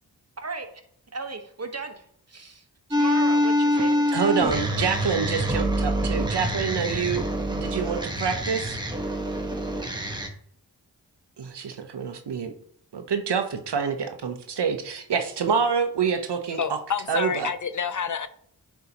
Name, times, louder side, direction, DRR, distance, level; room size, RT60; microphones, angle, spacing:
voice 1, 1.1-4.4, right 3 dB, 35° right, 5 dB, 1.3 m, -36 dB
sound 1, 2.9-10.3, equal, 10° right, 1.3 m, -25 dB
voice 2, 4.1-8.8 11.4-12.5 12.9-16.6 17.1-17.5, right 6 dB, 75° right, 7 dB, 0.9 m, -27 dB
voice 3, 16.6-18.3, left 7 dB, 45° left, 12 dB, 0.6 m, -28 dB
9.3 x 4.7 x 2.9 m, 0.65 s
cardioid pair, 40°, 42 cm